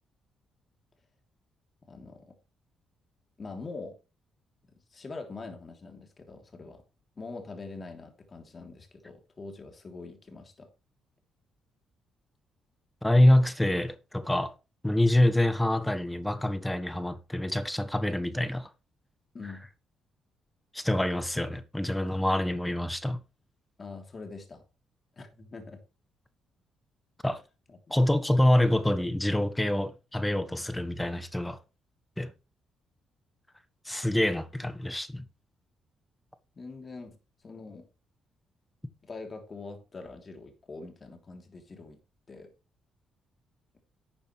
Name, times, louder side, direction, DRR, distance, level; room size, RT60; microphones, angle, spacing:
voice 1, 1.9-2.4 3.4-4.0 4.7-6.8 7.2-10.7 19.3-19.7 23.8-24.6 25.2-25.8 27.7-28.0 36.5-37.9 39.0-42.0 42.3-42.5, left 3 dB, 35° left, 3.2 m, -44 dB
voice 2, 13.0-14.5 14.8-18.7 20.7-23.2 27.2-27.4 27.9-31.6 32.2-32.3 33.8-35.2, left 1 dB, 10° left, 1.2 m, -26 dB
11.5 x 8.7 x 3.3 m
cardioid pair, 90°, 0 cm